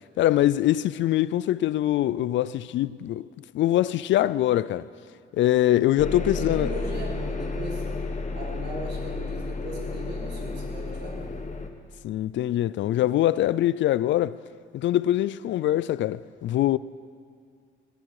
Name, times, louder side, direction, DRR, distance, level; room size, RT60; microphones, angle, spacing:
voice 1, 0.2-3.3 3.5-4.9 5.3-6.7 12.0-14.4 14.7-16.8, left 13 dB, 70° left, 0.4 m, -23 dB
sound 1, 6.0-11.7, left 3 dB, 35° left, 1.3 m, -32 dB
voice 2, 6.1-7.8 8.3-11.3, right 2 dB, 60° right, 5.1 m, -38 dB
20.0 x 14.0 x 4.8 m
cardioid pair, 90°, 20 cm